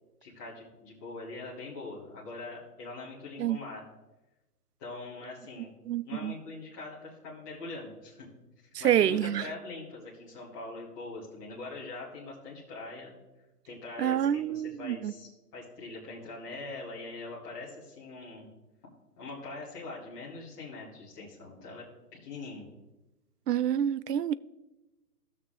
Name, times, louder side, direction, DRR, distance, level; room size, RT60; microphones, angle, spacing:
voice 1, 0.2-3.8 4.8-5.7 6.0-8.3 8.8-13.1 13.6-18.5 19.2-21.8 22.2-22.7, left 3 dB, 10° left, 1.3 m, -42 dB
voice 2, 5.9-6.3 8.8-9.4 14.0-15.1 23.5-24.3, right 10 dB, 80° right, 0.6 m, -27 dB
15.5 x 6.5 x 3.7 m
hypercardioid pair, 170°, 47 cm